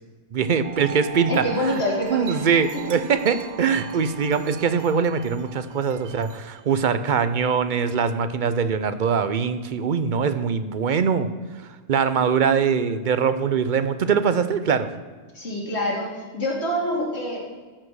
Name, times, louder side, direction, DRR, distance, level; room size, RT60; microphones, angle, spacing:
voice 1, 0.3-1.8 2.1-11.3 11.9-14.9, right 6 dB, 55° right, 11 dB, 0.7 m, -22 dB
Wind chime, 0.6-7.1, right 9 dB, 80° right, 1.0 m, -39 dB
voice 2, 1.3-2.5 15.3-17.4, left 1 dB, 75° left, -2 dB, 2.7 m, -26 dB
13.5 x 5.0 x 6.3 m, 1.4 s
omnidirectional pair, 1.1 m